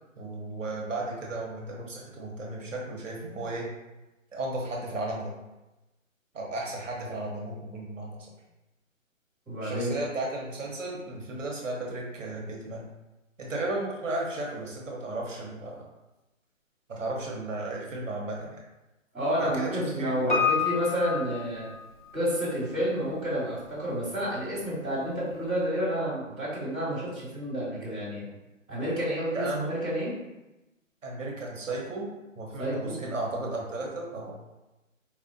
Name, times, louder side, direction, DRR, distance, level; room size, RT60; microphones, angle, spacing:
voice 1, 0.2-3.7 4.3-5.3 6.3-8.2 9.6-12.8 13.4-15.8 16.9-18.6 19.4-20.2 29.3-29.7 31.0-32.1 32.4-34.3, right 2 dB, 70° right, -2 dB, 1.0 m, -34 dB
voice 2, 9.4-9.9 19.1-21.7 22.1-28.2 28.7-30.1 32.6-33.0, equal, ahead, -18 dB, 1.2 m, -30 dB
Piano, 20.3-22.3 22.6-22.7, left 6 dB, 40° left, 0.4 m, -29 dB
4.3 x 2.4 x 2.6 m, 1.0 s
hypercardioid pair, 170°, 40 cm